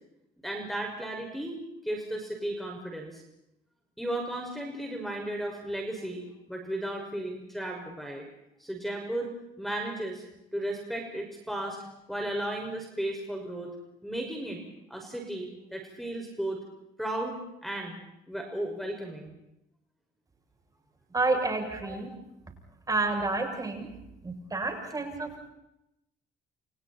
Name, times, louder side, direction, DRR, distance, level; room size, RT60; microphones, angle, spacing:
voice 1, 0.4-3.2 4.0-6.2 6.5-8.3 8.6-10.2 10.5-11.8 12.1-13.7 14.0-14.6 14.9-16.6 17.0-18.0 18.3-19.3 21.8-22.0, right 1 dB, ahead, 2 dB, 6.0 m, -35 dB
voice 2, 21.1-22.1 22.9-23.9 24.2-25.5, right 3 dB, 20° right, 3 dB, 7.9 m, -29 dB
30.0 x 29.5 x 4.4 m, 0.85 s
cardioid pair, 110°, 17 cm